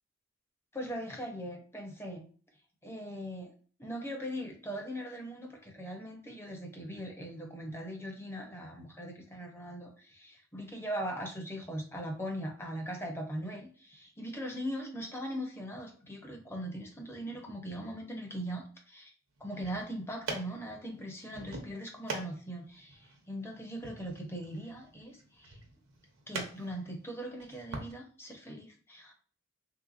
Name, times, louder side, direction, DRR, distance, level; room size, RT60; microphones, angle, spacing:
voice 1, 0.7-2.2 2.8-3.5 3.8-19.1 19.4-25.6 26.3-29.1, equal, 15° left, 2 dB, 0.6 m, -40 dB
sound 1, 19.4-27.9, right 3 dB, 90° right, 0.7 m, -44 dB
3.3 x 2.7 x 2.4 m, 0.42 s
head